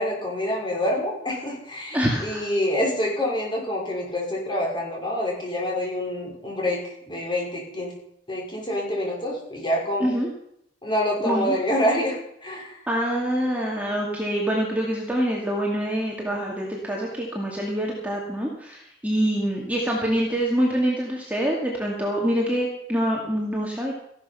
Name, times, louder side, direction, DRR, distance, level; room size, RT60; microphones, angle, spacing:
voice 1, 0.0-6.8 7.1-7.9 8.3-10.1 10.8-12.8, left 1 dB, 25° left, -2 dB, 5.5 m, -26 dB
voice 2, 1.9-2.4 10.0-10.3 11.2-11.6 12.9-23.9, equal, 10° right, -3 dB, 2.5 m, -25 dB
15.5 x 12.0 x 5.8 m, 0.74 s
head